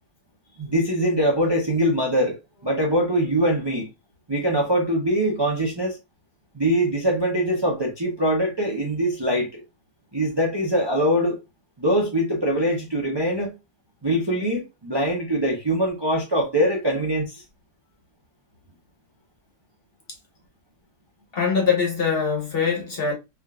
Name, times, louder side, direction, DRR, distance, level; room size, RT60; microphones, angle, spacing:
voice 1, 0.6-3.9 4.3-6.0 6.5-9.6 10.1-11.4 11.8-13.5 14.0-17.4, equal, 40° right, 0.3 m, -23 dB
voice 2, 21.3-23.1, left 5 dB, 45° left, 0.9 m, -23 dB
3.5 x 2.5 x 2.2 m
omnidirectional pair, 1.7 m